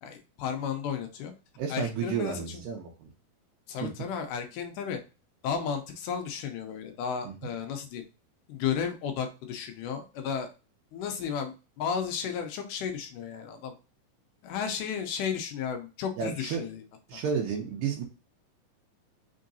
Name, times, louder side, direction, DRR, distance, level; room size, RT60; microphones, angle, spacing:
voice 1, 0.0-1.3 1.7-2.6 3.7-5.0 5.4-8.0 8.5-10.5 10.9-13.8 14.4-16.8 17.1-17.2, left 7 dB, 80° left, 5 dB, 2.0 m, -33 dB
voice 2, 1.6-3.1 3.8-3.9 7.3-7.5 16.2-16.6 17.1-18.0, right 6 dB, 75° right, 0 dB, 2.3 m, -32 dB
5.4 x 3.7 x 2.6 m, 0.31 s
omnidirectional pair, 4.1 m